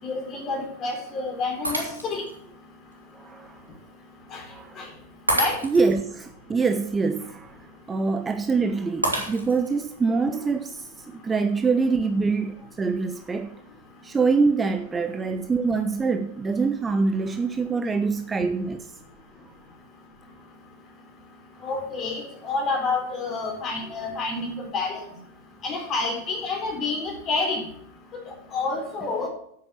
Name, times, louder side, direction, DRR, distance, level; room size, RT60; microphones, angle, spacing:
voice 1, 0.0-2.2 4.3-4.4 4.8-4.9 5.4-5.6 21.6-25.0 25.6-27.6 28.1-29.3, left 3 dB, 30° left, 4.0 m, -29 dB
Shatter, 1.6-2.3 2.9-3.0 5.3-6.0 9.0-9.8, right 1 dB, 85° right, 2.7 m, -28 dB
voice 2, 3.1-3.6 4.5-4.8 5.6-7.6 7.9-13.6 14.0-18.9, right 4 dB, 15° right, 0.7 m, -25 dB
8.8 x 8.6 x 7.3 m
figure-of-eight pair, 90°, 0 cm